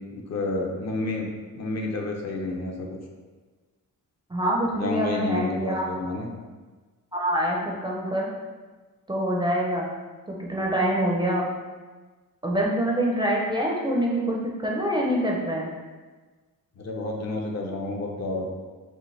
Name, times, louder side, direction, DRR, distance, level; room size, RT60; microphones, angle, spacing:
voice 1, 0.0-2.9 4.8-6.4 16.8-18.5, left 2 dB, 50° left, 1 dB, 0.7 m, -30 dB
voice 2, 4.3-5.9 7.1-8.3 9.1-9.9 10.3-11.5 12.4-14.4 14.6-15.7, right 1 dB, 15° right, -3 dB, 0.5 m, -25 dB
5.4 x 2.9 x 3.2 m, 1.3 s
wide cardioid pair, 170°, 35 cm